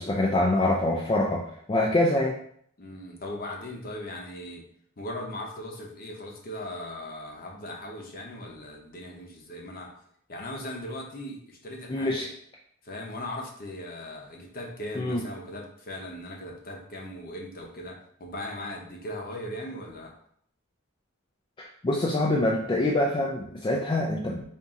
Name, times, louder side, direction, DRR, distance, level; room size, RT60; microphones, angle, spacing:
voice 1, 0.0-2.4 11.9-12.3 15.0-15.2 21.8-24.4, left 1 dB, 25° left, -2 dB, 0.3 m, -25 dB
voice 2, 2.8-4.6 5.0-9.9 10.3-12.2 12.8-20.1, left 1 dB, 45° left, 0 dB, 0.8 m, -38 dB
3.9 x 2.6 x 3.6 m, 0.65 s
head